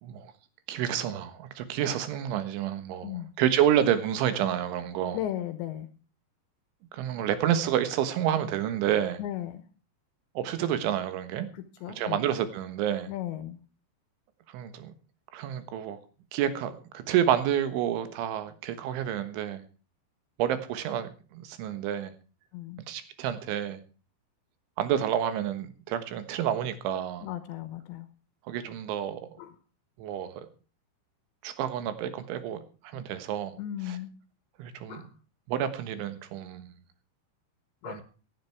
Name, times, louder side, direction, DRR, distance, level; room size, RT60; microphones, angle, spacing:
voice 1, 0.0-0.3 0.7-3.1 3.4-5.2 6.9-9.2 10.4-11.5 12.0-13.1 14.5-14.9 15.3-16.0 16.3-19.6 20.4-22.1 22.9-23.8 24.8-27.3 28.5-29.2 30.0-30.4 31.4-32.6 32.8-33.5 33.9-34.0 34.6-35.0 35.5-36.8 37.9-38.0, right 10 dB, 85° right, 3.8 m, -29 dB
voice 2, 5.1-5.9 9.2-9.6 11.5-12.3 13.1-13.6 22.5-22.8 27.2-28.1 29.4-29.6 32.9-33.0 33.6-34.1 34.9-35.1 37.8-38.0, left 12 dB, 80° left, 3.2 m, -36 dB
16.5 x 10.5 x 4.7 m
omnidirectional pair, 5.4 m